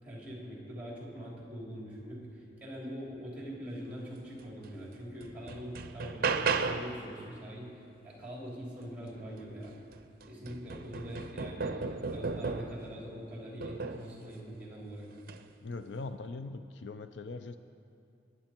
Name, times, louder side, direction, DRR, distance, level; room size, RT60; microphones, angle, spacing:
voice 1, 0.0-7.7 8.0-9.8 10.3-15.1, equal, 10° right, -4 dB, 3.5 m, -43 dB
sound 1, 4.6-4.7 5.2-7.0 9.4-9.5 9.9-12.9 13.6-14.1 15.2-15.4, right 4 dB, 55° right, 0.6 m, -34 dB
voice 2, 15.6-17.6, left 3 dB, 70° left, 10 dB, 0.5 m, -41 dB
21.5 x 9.6 x 4.4 m, 2.5 s
head